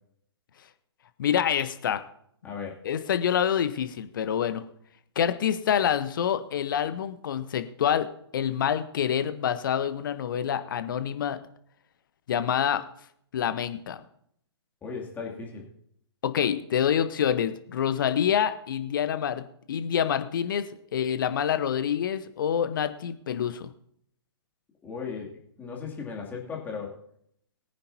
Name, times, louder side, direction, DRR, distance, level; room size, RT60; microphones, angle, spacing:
voice 1, 1.2-2.0 2.8-4.6 5.2-8.1 8.3-11.4 12.3-12.8 13.3-14.0 16.2-20.7 20.9-23.7, left 9 dB, 50° left, 11 dB, 1.1 m, -26 dB
voice 2, 2.4-2.8 14.8-15.6 24.8-25.3 25.6-27.0, left 5 dB, 10° left, -2 dB, 2.8 m, -36 dB
21.5 x 9.7 x 2.8 m, 0.69 s
figure-of-eight pair, 120°, 14 cm